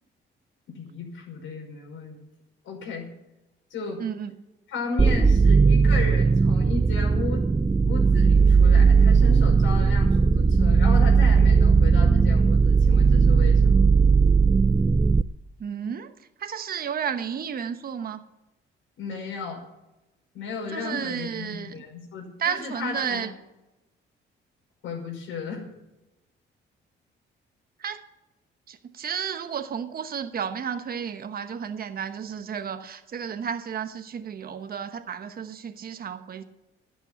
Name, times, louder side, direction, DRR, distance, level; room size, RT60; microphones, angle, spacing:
voice 1, 0.7-2.2 2.6-3.1 3.7-4.0 4.7-7.5 7.8-13.8 19.0-19.6 20.3-23.3 24.8-25.6, left 4 dB, 85° left, -1 dB, 5.7 m, -34 dB
voice 2, 4.0-4.3 15.6-16.1 16.4-18.2 20.7-21.8 22.4-23.3 27.8-28.0 28.7-36.4, right 7 dB, 50° right, 9 dB, 1.0 m, -32 dB
sound 1, 5.0-15.2, right 5 dB, 15° right, 0.4 m, -18 dB
12.0 x 8.1 x 9.7 m, 0.97 s
cardioid pair, 90°, 20 cm